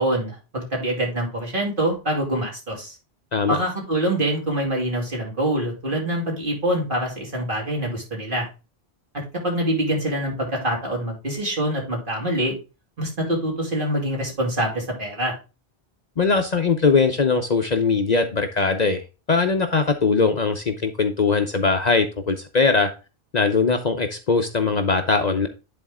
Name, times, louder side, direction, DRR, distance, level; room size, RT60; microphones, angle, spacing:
voice 1, 0.0-3.0 3.5-8.5 9.4-12.5 13.0-15.4, right 1 dB, 55° right, -1 dB, 2.9 m, -25 dB
voice 2, 16.2-19.0 19.3-22.9 23.3-25.5, left 4 dB, 45° left, 6 dB, 0.8 m, -20 dB
10.0 x 4.1 x 3.5 m, 0.29 s
omnidirectional pair, 1.1 m